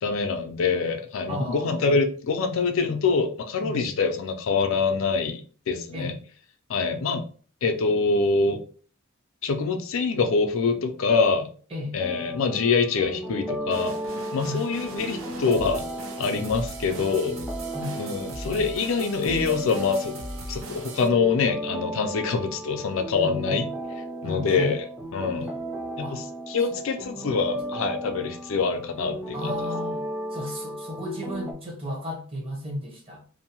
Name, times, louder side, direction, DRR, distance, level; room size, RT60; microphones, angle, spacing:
voice 1, 0.0-6.1 6.7-7.3 7.6-8.6 9.4-11.5 11.9-13.9 14.3-15.9 16.2-17.4 18.0-20.2 20.5-23.7 24.2-24.8 25.1-25.5 26.0-29.5, left 4 dB, 65° left, 6 dB, 0.4 m, -25 dB
voice 2, 1.3-1.9 3.6-3.9 5.9-6.2 11.7-12.0 14.4-14.7 17.7-18.0 23.2-23.6 24.2-24.8 26.0-26.2 26.7-26.8 27.1-27.3 29.3-30.0 30.3-33.2, left 1 dB, 25° right, -2 dB, 0.8 m, -33 dB
sound 1, 12.0-31.5, equal, ahead, 0.4 m, -35 dB
sound 2, 13.7-21.1, right 2 dB, 70° right, 0.5 m, -39 dB
2.6 x 2.0 x 2.8 m, 0.42 s
head